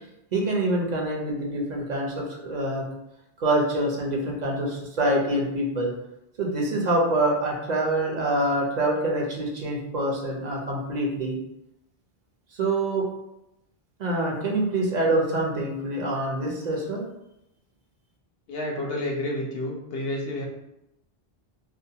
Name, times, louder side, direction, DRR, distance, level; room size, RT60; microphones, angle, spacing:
voice 1, 0.3-2.8 3.4-5.9 6.4-11.4 12.6-13.1 14.0-17.0, right 1 dB, 50° right, -1 dB, 0.6 m, -25 dB
voice 2, 18.5-20.4, left 1 dB, 75° left, -1 dB, 0.8 m, -30 dB
2.5 x 2.2 x 2.7 m, 0.88 s
omnidirectional pair, 1.0 m